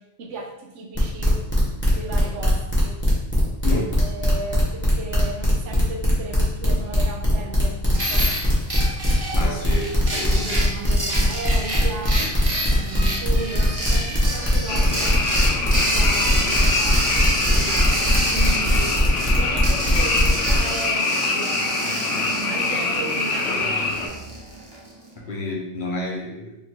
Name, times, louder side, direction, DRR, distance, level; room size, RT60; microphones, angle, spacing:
voice 1, 0.0-1.5 2.0-3.0 3.7-8.3 10.1-12.3 12.7-15.4 15.6-19.0 19.4-22.1 22.5-24.3, right 3 dB, 75° right, 2 dB, 1.0 m, -35 dB
sound 1, 1.0-20.6, equal, 10° left, 1.0 m, -21 dB
sound 2, 7.9-24.9, right 1 dB, 25° right, 0.6 m, -29 dB
voice 2, 9.3-10.6 25.2-26.6, left 1 dB, 50° left, -2 dB, 0.7 m, -30 dB
Frog, 14.7-24.1, left 3 dB, 85° left, 1.0 m, -25 dB
3.0 x 2.9 x 4.2 m, 0.93 s
omnidirectional pair, 1.2 m